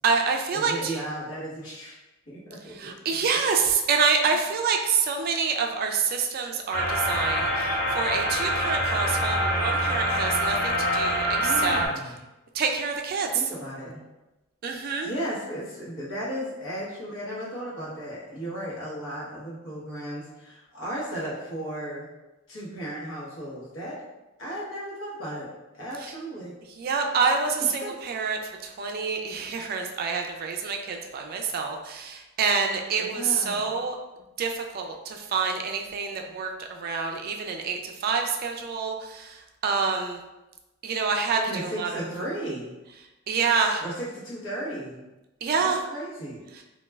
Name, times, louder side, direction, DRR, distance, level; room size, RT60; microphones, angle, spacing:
voice 1, 0.0-1.0 2.7-11.8 12.5-13.3 14.6-15.1 26.0-26.1 26.8-34.0 34.4-40.2 40.8-42.0 43.3-43.8 45.4-45.8, right 5 dB, 45° right, 3 dB, 0.3 m, -27 dB
voice 2, 0.5-2.0 2.3-3.2 11.3-12.1 13.3-14.0 15.0-22.1 22.5-24.0 24.4-25.5 25.7-26.5 27.6-27.9 32.9-33.6 41.4-42.7 43.8-45.0 45.6-46.4, right 1 dB, 70° left, -6 dB, 0.9 m, -35 dB
sound 1, 6.7-11.9, equal, 50° left, 0.7 m, -25 dB
3.1 x 2.3 x 2.2 m, 1.0 s
head